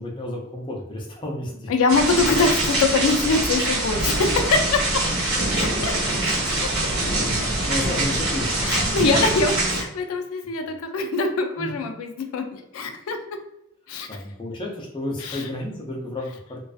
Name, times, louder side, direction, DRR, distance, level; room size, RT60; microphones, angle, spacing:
voice 1, 0.0-1.7 7.4-9.0 11.6-11.9 14.1-16.6, left 1 dB, 25° left, -1 dB, 0.4 m, -32 dB
voice 2, 1.7-5.0 5.6-5.9 6.2-6.7 8.6-13.4 13.9-14.2 15.2-15.5, left 3 dB, 90° left, 6 dB, 0.4 m, -24 dB
sound 1, 1.9-9.8, right 2 dB, 70° right, 1.1 m, -24 dB
2.4 x 2.3 x 2.3 m, 0.80 s
head